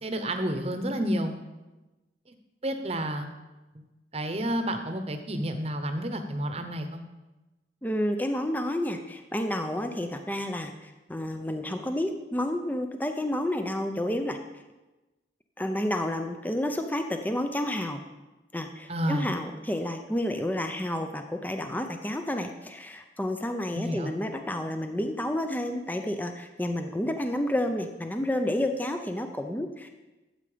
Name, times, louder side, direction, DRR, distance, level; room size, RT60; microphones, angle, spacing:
voice 1, 0.0-1.3 2.6-3.3 3.7-3.8 4.1-7.0 18.9-19.3 23.8-24.1, equal, 35° right, 7 dB, 1.0 m, -30 dB
voice 2, 7.8-14.4 15.6-18.0 18.5-29.9, left 1 dB, 10° left, 6 dB, 0.5 m, -30 dB
12.5 x 7.9 x 5.0 m, 1.1 s
head